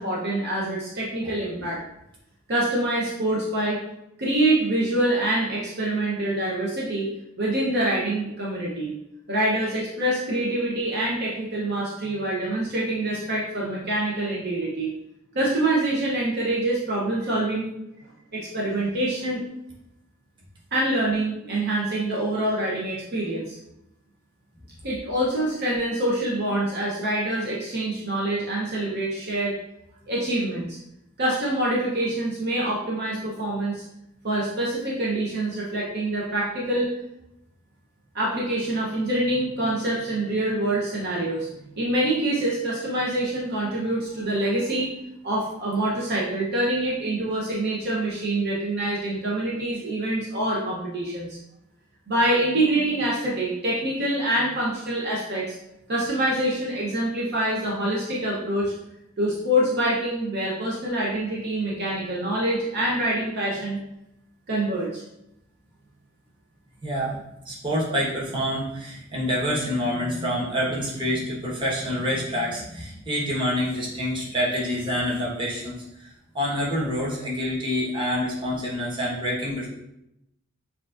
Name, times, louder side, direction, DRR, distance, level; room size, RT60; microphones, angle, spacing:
voice 1, 0.0-1.8 2.5-3.8 4.2-7.1 7.4-8.9 9.3-14.9 15.3-17.7 18.3-19.4 20.7-23.6 24.8-29.6 30.1-30.8 31.2-33.8 34.2-36.9 38.1-41.5 41.8-44.9 45.2-51.4 52.1-55.6 55.9-58.7 59.2-63.8 64.5-65.0, right 1 dB, 50° right, -5 dB, 0.8 m, -25 dB
voice 2, 66.8-67.2 67.4-76.1 76.3-79.7, equal, 25° right, -6 dB, 1.2 m, -27 dB
7.1 x 2.5 x 2.5 m, 0.84 s
head